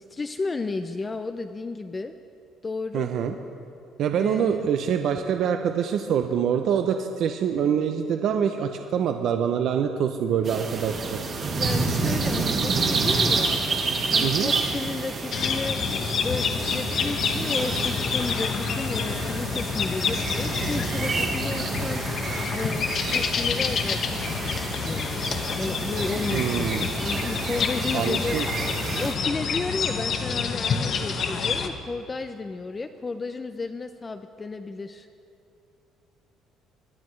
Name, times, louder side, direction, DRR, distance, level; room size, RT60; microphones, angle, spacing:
voice 1, 0.0-2.1 2.6-3.1 4.2-4.7 11.5-13.6 14.1-15.8 16.2-22.0 22.5-28.4 29.0-35.1, left 3 dB, 20° left, 8 dB, 0.4 m, -33 dB
voice 2, 2.9-3.3 4.0-11.3 14.2-14.5 26.3-26.9 27.9-28.5, right 8 dB, 55° right, 6 dB, 0.5 m, -25 dB
sound 1, 10.5-29.1, right 4 dB, 35° right, 1.5 m, -29 dB
sound 2, 15.3-31.7, left 6 dB, 40° left, 0.8 m, -28 dB
22.5 x 10.5 x 3.2 m, 2.7 s
cardioid pair, 145°, 0 cm